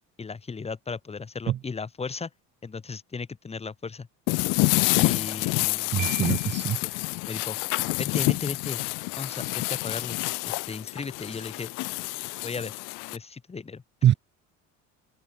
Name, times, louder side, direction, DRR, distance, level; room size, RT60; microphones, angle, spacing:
voice 1, 0.2-2.3 2.6-4.1 5.0-5.9 6.8-6.9 7.3-7.6 8.0-8.8 9.2-10.2 10.5-11.7 12.4-12.7 13.1-13.8, left 4 dB, 20° left, 3.9 m, -35 dB
sound 1, 4.3-13.2, left 28 dB, 80° left, 0.5 m, -28 dB
voice 2, 5.9-6.8 14.0-14.1, right 11 dB, 35° right, 0.8 m, -23 dB
Piano, 6.0-6.9, right 21 dB, 70° right, 2.0 m, -40 dB
cardioid pair, 145°, 32 cm